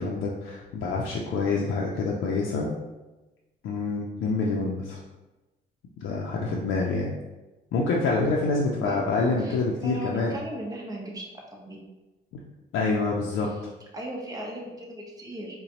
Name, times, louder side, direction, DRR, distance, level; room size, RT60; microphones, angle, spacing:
voice 1, 0.0-2.8 3.6-5.0 6.0-7.1 7.7-10.3 12.7-13.5, left 3 dB, 80° left, -2 dB, 0.5 m, -26 dB
voice 2, 9.4-11.2 11.5-11.8 13.9-15.6, right 1 dB, 20° right, -2 dB, 0.8 m, -37 dB
4.0 x 2.2 x 2.8 m, 1.1 s
cardioid pair, 90°, 20 cm